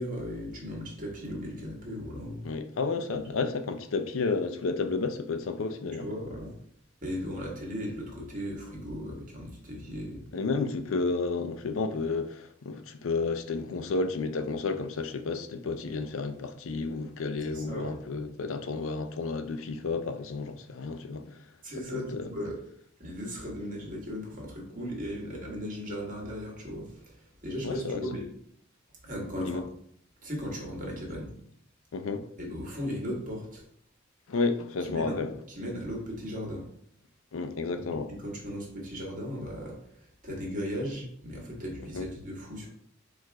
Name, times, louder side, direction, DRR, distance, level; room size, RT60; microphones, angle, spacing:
voice 1, 0.0-2.5 6.0-6.5 7.0-10.2 17.5-18.0 21.6-22.6 23.0-27.1 27.4-28.2 29.0-29.7 30.2-31.3 32.4-33.6 34.9-35.2 35.5-36.6 37.9-39.8 40.2-42.7, equal, 40° right, 1.5 m, -37 dB
voice 2, 2.4-6.1 10.3-21.4 21.9-22.3 27.6-28.0 29.4-29.6 31.9-32.3 34.3-35.4 37.3-38.1 41.9-42.1, left 4 dB, 75° left, 0.5 m, -31 dB
4.6 x 2.5 x 4.6 m
head